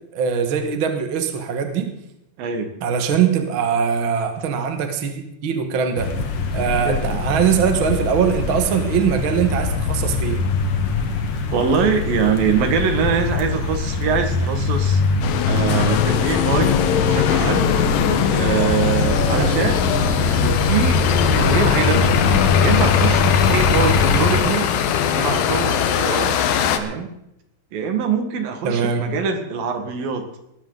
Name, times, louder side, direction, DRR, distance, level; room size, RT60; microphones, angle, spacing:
voice 1, 0.1-1.9 2.8-6.2 6.5-10.5 19.3-19.5 28.6-29.1, right 7 dB, 50° right, 5 dB, 1.7 m, -21 dB
voice 2, 2.4-2.7 6.9-7.4 11.5-15.0 15.5-16.8 17.1-17.7 18.3-19.9 20.2-21.0 21.4-24.7 25.0-26.4 26.8-27.1 27.7-30.3, right 6 dB, 90° right, 6 dB, 3.5 m, -23 dB
sound 1, 6.0-24.4, left 4 dB, 50° left, 2.1 m, -22 dB
sound 2, 15.2-26.8, left 9 dB, 80° left, 2.8 m, -21 dB
20.0 x 14.0 x 4.0 m, 0.82 s
omnidirectional pair, 3.9 m